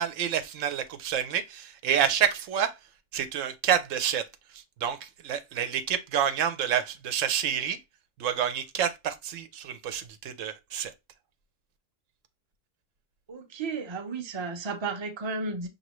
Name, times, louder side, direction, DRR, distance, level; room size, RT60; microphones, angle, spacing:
voice 1, 0.0-2.7 3.1-4.2 4.5-7.8 8.2-10.9, right 9 dB, 85° right, 1.0 m, -28 dB
voice 2, 13.3-15.7, right 4 dB, 30° right, 0.5 m, -33 dB
5.4 x 2.8 x 3.0 m
omnidirectional pair, 1.3 m